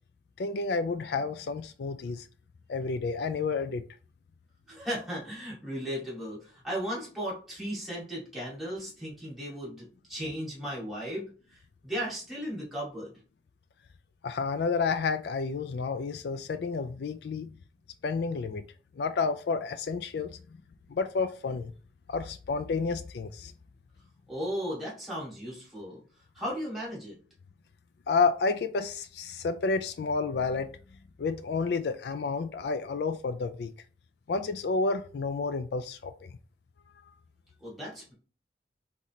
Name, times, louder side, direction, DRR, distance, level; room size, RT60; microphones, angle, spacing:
voice 1, 0.4-2.2 2.7-3.8 14.2-17.6 18.0-18.7 19.0-20.4 20.9-21.7 22.1-23.5 28.1-30.7 31.2-33.7 34.3-36.3, left 4 dB, 65° left, 0.4 m, -30 dB
voice 2, 4.7-13.1 24.3-26.0 26.3-27.2 37.6-38.1, equal, ahead, 2.3 m, -36 dB
4.2 x 4.0 x 3.1 m
head